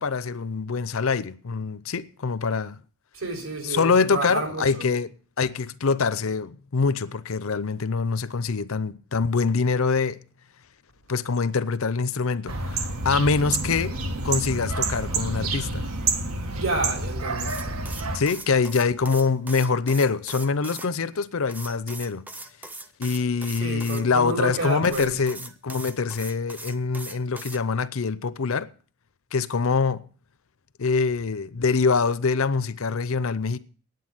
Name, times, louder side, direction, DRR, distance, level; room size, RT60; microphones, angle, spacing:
voice 1, 0.0-2.8 3.6-5.1 5.4-10.2 11.1-13.9 14.2-15.9 18.1-22.2 23.0-28.7 29.3-30.0 30.8-33.6, left 4 dB, 75° left, 0.6 m, -24 dB
voice 2, 3.1-4.9 16.6-17.5 23.6-25.1, right 2 dB, 65° right, 3.7 m, -30 dB
sound 1, 12.5-18.2, right 3 dB, 90° right, 1.7 m, -28 dB
sound 2, 17.4-20.9 21.5-24.0 24.8-27.6, right 2 dB, 10° right, 0.6 m, -40 dB
9.4 x 9.1 x 7.7 m
head